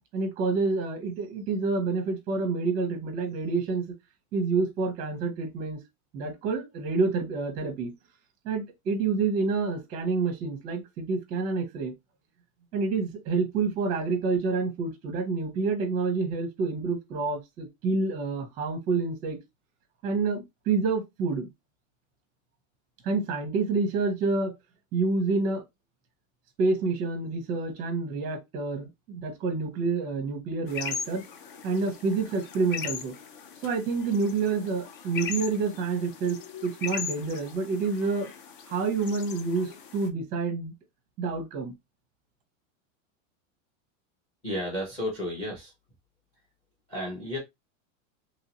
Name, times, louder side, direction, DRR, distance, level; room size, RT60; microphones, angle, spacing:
voice 1, 0.1-3.8 4.3-5.8 6.1-7.9 8.4-11.9 12.7-19.4 20.0-21.5 23.0-24.5 24.9-25.6 26.6-31.2 31.6-33.1 33.6-38.3 38.7-40.7 41.2-41.7, right 4 dB, 20° right, 0.7 m, -28 dB
sound 1, 30.7-40.1, left 7 dB, 40° left, 0.4 m, -39 dB
voice 2, 44.4-45.7 46.9-47.4, left 1 dB, 15° left, 0.9 m, -32 dB
3.0 x 2.8 x 2.8 m
supercardioid pair, 175°, 40 cm